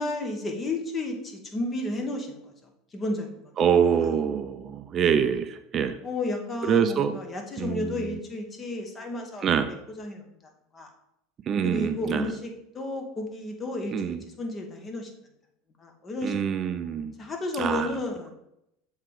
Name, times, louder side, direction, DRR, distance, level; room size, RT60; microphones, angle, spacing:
voice 1, 0.0-3.5 5.0-5.1 6.0-9.5 10.0-10.9 11.6-15.1 15.8-16.4 17.2-18.3, left 2 dB, 30° left, 3 dB, 1.5 m, -32 dB
voice 2, 3.6-6.0 6.7-7.1 7.6-7.9 9.4-9.7 11.5-12.3 13.9-14.2 16.2-17.1 17.6-17.9, right 8 dB, 40° right, 9 dB, 0.5 m, -25 dB
7.4 x 3.7 x 4.8 m, 0.81 s
hypercardioid pair, 80°, 0 cm